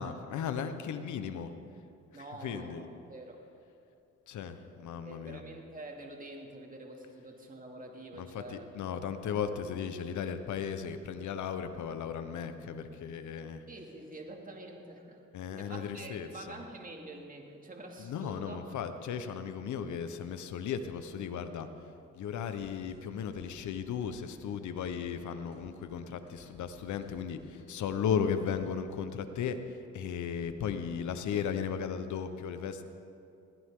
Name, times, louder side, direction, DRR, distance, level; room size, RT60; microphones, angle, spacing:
voice 1, 0.0-1.5 2.4-2.8 4.3-5.4 8.2-13.6 15.3-16.5 18.0-21.7 22.2-29.6 29.9-32.8, left 7 dB, 75° left, 9 dB, 1.2 m, -36 dB
voice 2, 2.1-3.4 4.9-8.7 13.7-15.2 15.6-18.8, right 2 dB, 30° right, 1 dB, 2.7 m, -47 dB
sound 1, 22.4-29.1, left 3 dB, 50° left, 4.5 m, -60 dB
21.5 x 16.0 x 3.9 m, 2.6 s
cardioid pair, 90°, 30 cm